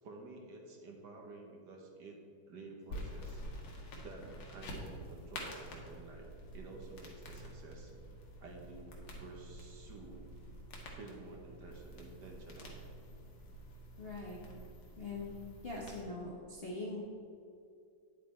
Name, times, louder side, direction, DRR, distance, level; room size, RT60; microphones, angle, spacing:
voice 1, 0.0-2.2 2.5-3.4 4.0-7.9 8.4-10.4 10.9-12.8, right 2 dB, 55° right, 1 dB, 1.5 m, -51 dB
sound 1, 2.9-16.0, equal, 70° left, 2.2 m, -48 dB
voice 2, 14.0-14.4 15.0-15.3 15.6-17.0, left 2 dB, 40° left, -4 dB, 0.8 m, -42 dB
9.5 x 7.4 x 4.3 m, 2.5 s
omnidirectional pair, 2.4 m